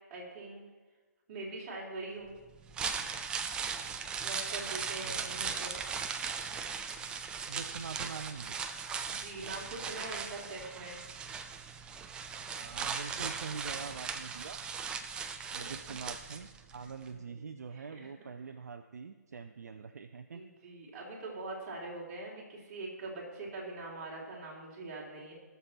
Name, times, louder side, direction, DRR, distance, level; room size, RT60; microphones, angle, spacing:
voice 1, 0.1-0.6 1.3-2.3 4.2-5.8 9.1-11.0 15.1-15.7 17.1-18.1 20.3-25.3, right 2 dB, 30° right, -4 dB, 3.6 m, -43 dB
sound 1, 2.5-16.8 17.1-17.2, right 6 dB, 10° right, 0.4 m, -38 dB
voice 2, 5.0-5.4 7.5-8.6 12.5-14.6 15.5-20.4, right 5 dB, 65° right, 7 dB, 0.6 m, -44 dB
18.5 x 6.9 x 4.3 m, 1.3 s
figure-of-eight pair, 140°, 9 cm